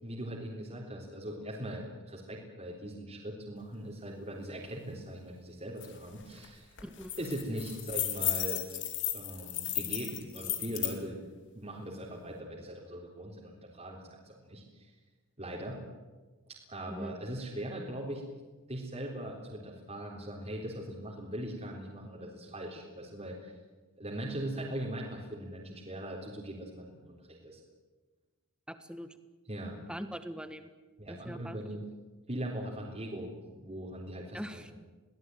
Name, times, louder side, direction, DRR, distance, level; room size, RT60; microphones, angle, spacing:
voice 1, 0.0-6.8 7.2-8.6 9.1-11.2 11.5-14.9 15.4-15.8 16.7-18.2 18.7-23.5 24.0-27.6 29.5-29.8 31.0-31.8 32.3-34.7, right 1 dB, 30° right, -3 dB, 3.8 m, -40 dB
sound 1, 5.8-5.9 6.2-6.5 6.8-10.9, left 12 dB, 55° left, 3.3 m, -34 dB
voice 2, 6.8-7.1 16.9-17.1 28.7-29.1 29.9-30.7 31.2-31.6 34.3-34.7, equal, 5° right, 9 dB, 1.5 m, -41 dB
24.0 x 18.0 x 9.3 m, 1.3 s
head